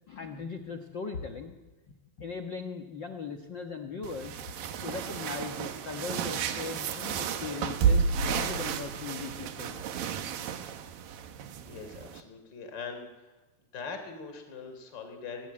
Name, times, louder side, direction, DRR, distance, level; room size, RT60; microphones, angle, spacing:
voice 1, 0.1-1.5 1.9-4.3 4.8-9.8, left 5 dB, 85° left, 4 dB, 1.0 m, -39 dB
sound 1, 4.0-12.2, right 6 dB, 70° right, 3.0 m, -32 dB
voice 2, 11.6-13.3 13.7-15.5, left 5 dB, 30° left, 6 dB, 3.6 m, -42 dB
24.5 x 19.0 x 8.8 m, 1.3 s
omnidirectional pair, 4.3 m